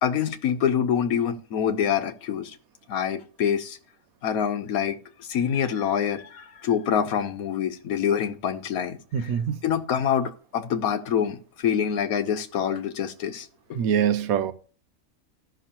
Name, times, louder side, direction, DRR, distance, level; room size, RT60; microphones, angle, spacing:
voice 1, 0.0-2.6 2.9-3.8 4.2-9.3 9.6-13.8, left 8 dB, 80° left, 1.3 m, -26 dB
voice 2, 9.1-9.5 13.8-14.5, right 8 dB, 85° right, 1.1 m, -23 dB
14.5 x 6.0 x 2.9 m
omnidirectional pair, 1.5 m